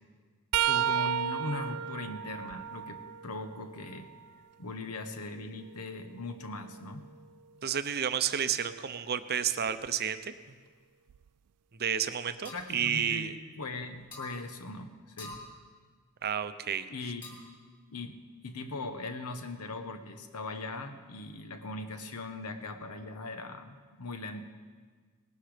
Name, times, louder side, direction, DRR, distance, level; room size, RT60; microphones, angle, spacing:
sound 1, 0.5-4.3 4.8-6.8 9.7-9.9 11.1-11.3 12.6-12.7, right 10 dB, 85° right, 0.3 m, -34 dB
voice 1, 0.7-4.1 4.6-7.1 12.5-15.4 16.9-17.4 17.9-18.2 18.4-24.4, left 2 dB, 85° left, 8 dB, 1.2 m, -40 dB
voice 2, 7.6-10.5 11.8-13.3 16.2-16.9, right 8 dB, 45° right, 11 dB, 0.7 m, -31 dB
sound 2, 12.4-12.7 14.1-14.4 15.2-15.5 17.2-17.6, left 2 dB, 20° left, 2.8 m, -44 dB
18.5 x 12.0 x 5.1 m, 1.6 s
head